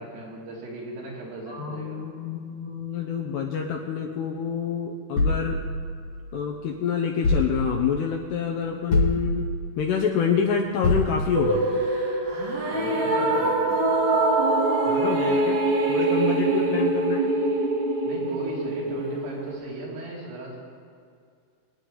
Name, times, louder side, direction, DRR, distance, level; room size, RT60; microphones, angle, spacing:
voice 1, 0.0-2.0 12.7-13.8 18.0-20.6, right 2 dB, 85° right, -5 dB, 5.7 m, -37 dB
voice 2, 1.5-5.6 6.3-9.5 9.8-11.6 14.9-15.6 15.9-17.3, left 7 dB, 80° left, 1 dB, 2.5 m, -27 dB
sound 1, 5.2-6.6 7.2-8.1 8.9-9.8 10.8-11.6, left 2 dB, 55° left, 1.8 m, -26 dB
sound 2, 11.4-19.6, right 2 dB, 55° right, 3.0 m, -24 dB
24.5 x 9.9 x 3.9 m, 2.2 s
omnidirectional pair, 5.7 m